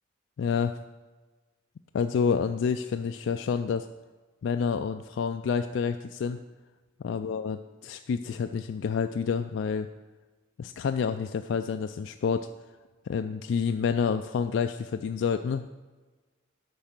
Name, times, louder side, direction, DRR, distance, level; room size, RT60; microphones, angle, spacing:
voice 1, 0.4-0.8 1.9-3.9 4.4-6.4 7.0-9.9 10.6-12.5 13.1-15.7, left 6 dB, 70° left, 8 dB, 0.3 m, -28 dB
8.7 x 5.4 x 5.9 m, 1.3 s
head